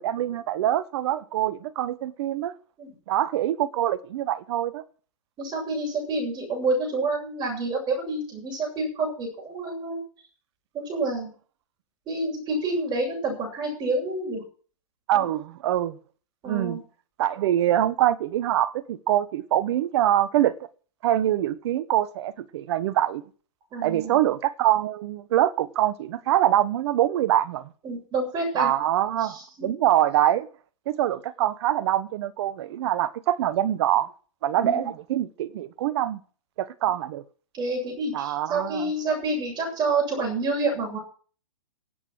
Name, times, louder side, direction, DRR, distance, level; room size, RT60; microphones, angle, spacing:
voice 1, 0.0-2.5 3.1-4.8 15.1-16.0 16.5-16.8 17.2-20.5 21.0-23.2 23.8-27.7 28.6-30.5 30.9-34.1 34.4-36.2 36.6-37.2 38.1-38.9, right 12 dB, 50° right, 1.3 m, -24 dB
voice 2, 5.4-10.0 10.9-11.3 12.1-14.4 15.1-15.3 16.4-16.8 23.7-24.2 27.8-28.7 29.2-29.7 34.6-34.9 37.5-41.0, right 2 dB, 25° right, 7.7 m, -28 dB
16.5 x 8.6 x 6.3 m
hypercardioid pair, 125°, 17 cm